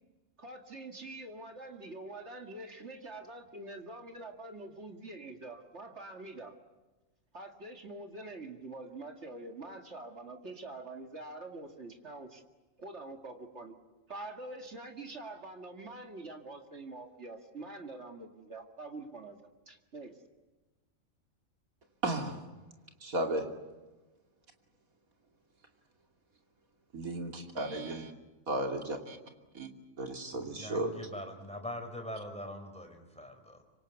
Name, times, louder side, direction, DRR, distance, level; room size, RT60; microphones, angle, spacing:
voice 1, 0.4-6.5 7.3-12.4 12.8-13.8 14.1-19.4 19.7-20.2, right 2 dB, 55° right, 2.4 m, -45 dB
voice 2, 22.0-22.4 23.0-23.5 26.9-28.1 28.5-29.2 29.5-29.7 30.0-31.0, right 2 dB, 80° right, 3.1 m, -34 dB
voice 3, 30.3-33.6, left 1 dB, 5° left, 4.2 m, -43 dB
25.5 x 24.5 x 8.3 m
omnidirectional pair, 1.4 m